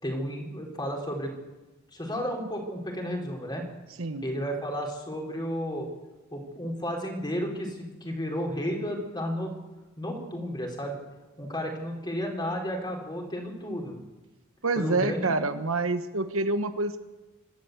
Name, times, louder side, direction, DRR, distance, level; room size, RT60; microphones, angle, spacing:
voice 1, 0.0-1.3 1.9-3.7 4.2-5.9 6.3-9.5 10.0-11.0 11.4-14.0 14.8-15.3, equal, 20° left, 1 dB, 4.5 m, -32 dB
voice 2, 14.6-17.0, right 3 dB, 70° right, 9 dB, 1.3 m, -27 dB
26.5 x 13.0 x 8.3 m, 1.1 s
head